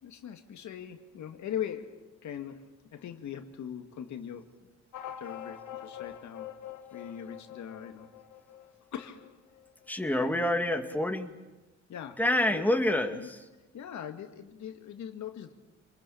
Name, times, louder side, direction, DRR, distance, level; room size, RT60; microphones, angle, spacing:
voice 1, 0.0-4.7 5.0-6.5 6.9-8.1 8.9-9.4 10.2-10.3 11.9-12.2 12.5-12.6 13.2-13.3 13.7-15.5, left 9 dB, 70° left, 6 dB, 2.3 m, -41 dB
sound 1, 4.9-9.9, left 10 dB, 90° left, 1.9 m, -45 dB
voice 2, 9.9-11.3 12.2-13.4, left 1 dB, 5° left, 5 dB, 2.4 m, -27 dB
28.5 x 21.0 x 8.7 m, 1.1 s
cardioid pair, 90°, 30 cm